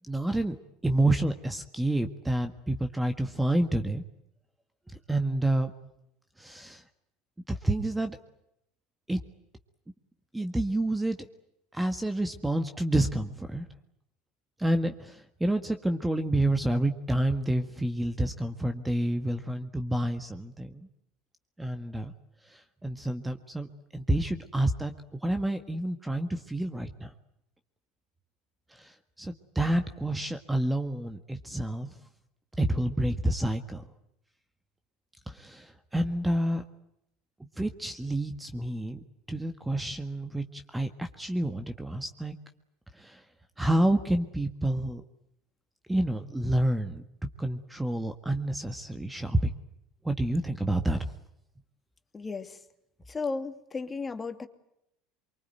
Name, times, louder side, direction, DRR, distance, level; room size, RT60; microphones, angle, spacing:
voice 1, 0.1-0.6 0.8-4.0 5.1-5.7 6.4-6.8 7.5-8.2 9.1-9.2 10.3-11.3 11.7-13.7 14.6-20.9 21.6-22.1 22.4-27.1 28.7-32.0 32.6-33.9 35.3-36.6 37.6-42.4 42.9-43.2 43.6-45.0 45.9-47.0 47.4-49.5 50.0-51.1, right 1 dB, 10° right, 8 dB, 1.8 m, -29 dB
voice 2, 52.1-52.6 53.1-54.5, left 4 dB, 20° left, 8 dB, 2.6 m, -34 dB
24.0 x 24.0 x 9.3 m, 0.80 s
supercardioid pair, 100°, 0 cm